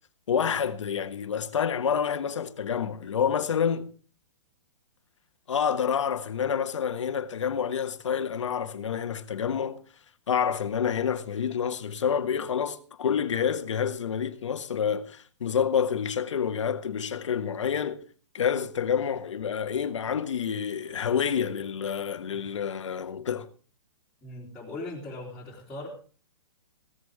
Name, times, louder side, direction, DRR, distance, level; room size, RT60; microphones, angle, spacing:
voice 1, 0.3-3.9 5.5-9.8 10.3-18.0 18.3-23.5, left 7 dB, 85° left, 1.5 m, -28 dB
voice 2, 24.2-25.9, left 2 dB, 5° left, 3.2 m, -39 dB
16.0 x 14.5 x 3.6 m
hypercardioid pair, 160°, 15 cm